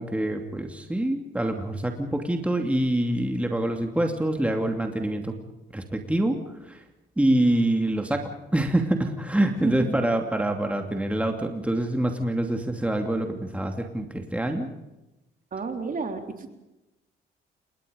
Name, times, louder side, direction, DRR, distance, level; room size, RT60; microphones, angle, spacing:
voice 1, 0.0-5.3 5.7-6.8 7.2-14.7, right 1 dB, 5° right, 4 dB, 2.7 m, -26 dB
voice 2, 9.6-10.0 15.5-16.5, right 4 dB, 45° right, 5 dB, 3.8 m, -31 dB
27.5 x 22.0 x 5.3 m, 0.97 s
cardioid pair, 90°, 20 cm